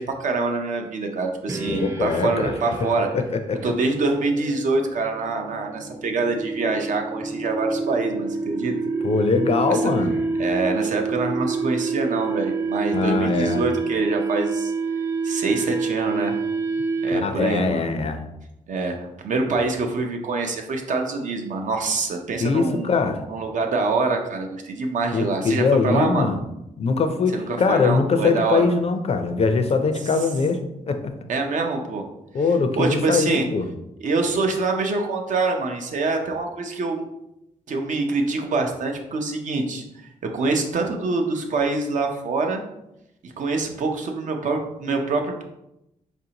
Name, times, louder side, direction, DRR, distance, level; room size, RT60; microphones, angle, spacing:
voice 1, 0.0-3.1 3.6-8.7 9.7-9.8 10.4-14.7 15.2-16.3 17.0-17.9 18.7-19.0 19.2-26.3 27.3-28.6 31.3-32.0 32.8-33.4 34.0-37.0 37.7-39.8 40.3-42.6 43.2-45.4, right 3 dB, 65° right, 3 dB, 0.6 m, -25 dB
sound 1, 1.5-17.4, right 4 dB, 20° right, 0.4 m, -28 dB
voice 2, 1.7-2.5 3.1-3.6 9.0-10.1 12.9-13.6 17.1-18.2 22.4-23.2 25.1-26.4 26.8-31.1 32.3-33.7, left 4 dB, 45° left, 7 dB, 0.4 m, -22 dB
4.1 x 2.6 x 2.8 m, 0.87 s
cardioid pair, 85°, 14 cm